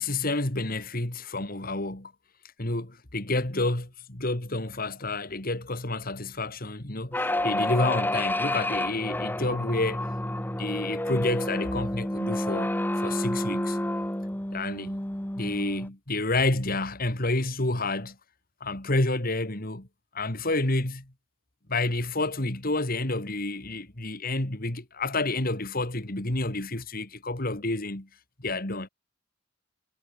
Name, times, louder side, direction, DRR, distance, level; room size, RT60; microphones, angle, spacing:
voice 1, 0.0-2.1 2.6-10.0 10.5-13.8 14.5-15.0 15.4-18.2 18.6-19.9 20.1-21.1 21.7-28.1 28.4-28.9, left 2 dB, 45° left, 2.9 m, -29 dB
sound 1, 7.1-15.9, left 1 dB, 10° left, 1.5 m, -29 dB
head